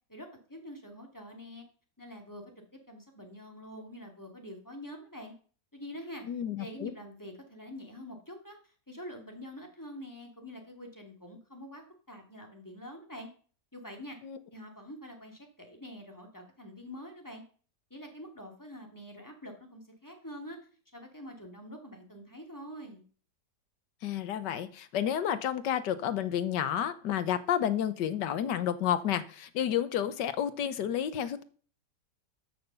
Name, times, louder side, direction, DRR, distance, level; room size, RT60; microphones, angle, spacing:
voice 1, 0.1-1.6 2.0-2.4 2.9-5.3 5.7-6.2 6.6-13.3 13.7-14.2 14.5-17.4 17.9-20.6 20.9-23.0, equal, 10° left, 2 dB, 2.5 m, -46 dB
voice 2, 6.3-6.9 14.2-14.4 24.0-31.4, left 10 dB, 85° left, 13 dB, 1.6 m, -30 dB
13.0 x 6.2 x 6.9 m, 0.43 s
omnidirectional pair, 1.8 m